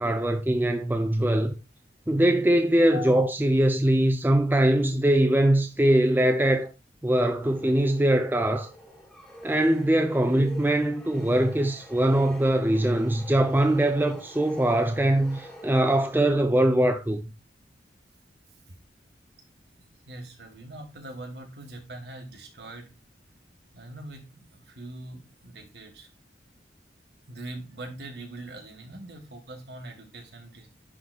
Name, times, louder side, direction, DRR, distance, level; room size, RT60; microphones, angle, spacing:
voice 1, 0.0-1.5 2.1-6.7 7.0-8.7 9.4-17.2, right 1 dB, 10° right, 0.4 m, -22 dB
voice 2, 2.9-3.3 20.0-22.9 23.7-26.1 27.3-30.7, equal, 65° right, 1.6 m, -42 dB
sound 1, 7.4-16.5, equal, 5° left, 1.4 m, -46 dB
10.5 x 3.9 x 2.3 m
head